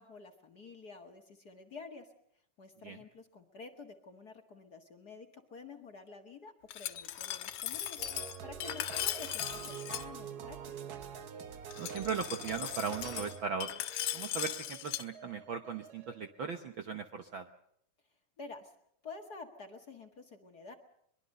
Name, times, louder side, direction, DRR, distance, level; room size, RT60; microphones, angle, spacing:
voice 1, 0.0-2.1 2.6-10.6 18.4-18.7 19.0-20.7, left 4 dB, 40° left, 5 dB, 1.8 m, -50 dB
Glass, 6.7-10.0 11.7-15.0, left 12 dB, 75° left, 2.4 m, -38 dB
sound 1, 8.0-16.5, right 7 dB, 80° right, 0.8 m, -46 dB
voice 2, 11.8-13.7 14.1-17.5, right 6 dB, 60° right, 7 dB, 1.3 m, -38 dB
23.0 x 23.0 x 6.6 m, 0.70 s
omnidirectional pair, 3.4 m